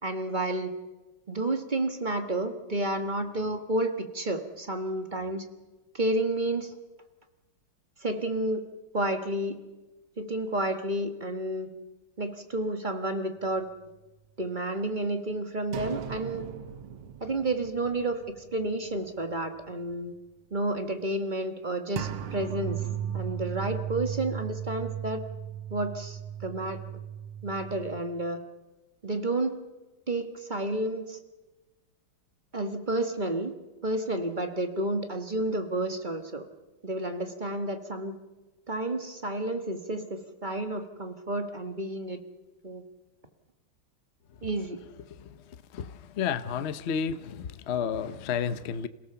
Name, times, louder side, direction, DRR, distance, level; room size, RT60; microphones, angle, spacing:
voice 1, 0.0-0.7 1.3-5.4 5.9-6.7 8.0-8.6 8.9-9.6 10.2-11.7 12.2-13.7 14.4-16.5 17.2-18.2 18.5-20.1 20.5-22.8 23.1-25.2 25.7-26.8 27.4-28.4 29.0-29.6 30.1-31.2 32.5-33.5 33.8-36.4 36.8-38.1 38.7-42.2 42.6-42.8 44.4-44.8, right 1 dB, 25° right, 1.5 m, -30 dB
sound 1, 15.7-18.9 19.2-19.3 22.0-28.0, right 9 dB, 85° right, 2.0 m, -36 dB
voice 2, 45.1-48.9, left 7 dB, 70° left, 0.6 m, -32 dB
27.5 x 17.5 x 7.0 m
omnidirectional pair, 2.3 m